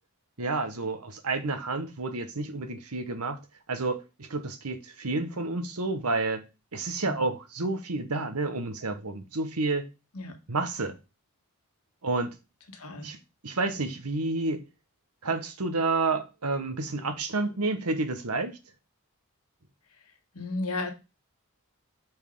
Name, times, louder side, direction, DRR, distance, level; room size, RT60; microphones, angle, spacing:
voice 1, 0.4-3.4 3.7-6.5 6.7-9.9 10.5-10.9 12.0-12.4 13.0-13.2 13.4-14.6 15.2-18.6, right 3 dB, 90° right, 1.2 m, -30 dB
voice 2, 12.8-13.1 20.3-20.9, left 2 dB, 80° left, 1.7 m, -33 dB
5.5 x 4.5 x 5.4 m
head